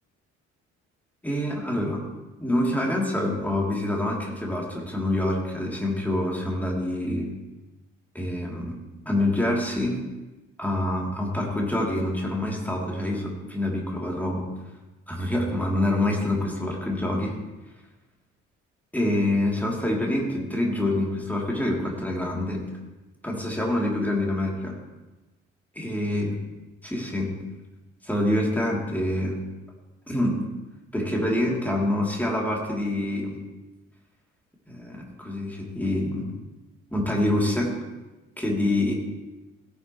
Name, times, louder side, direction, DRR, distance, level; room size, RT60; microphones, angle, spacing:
voice 1, 1.2-2.0 2.4-7.3 8.1-8.8 9.0-10.0 10.6-14.5 15.1-17.3 18.9-22.6 23.2-24.8 25.8-26.4 26.8-27.3 28.0-29.4 30.1-30.4 30.9-33.4 34.7-36.3 36.9-37.7 38.4-38.9, left 1 dB, 5° left, -2 dB, 3.1 m, -26 dB
16.5 x 8.8 x 3.2 m, 1.1 s
figure-of-eight pair, 45°, 38 cm